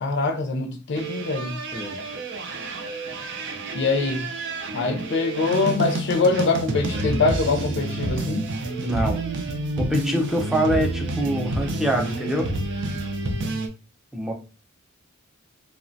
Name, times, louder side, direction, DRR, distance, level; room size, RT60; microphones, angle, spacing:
voice 1, 0.0-1.6 3.7-4.3 4.7-8.5, left 3 dB, 55° left, 0.5 m, -23 dB
sound 1, 0.9-13.7, right 2 dB, 60° right, 0.4 m, -29 dB
voice 2, 8.8-9.2 9.8-12.5 14.1-14.3, right 1 dB, ahead, 0.4 m, -25 dB
3.1 x 2.1 x 2.6 m
head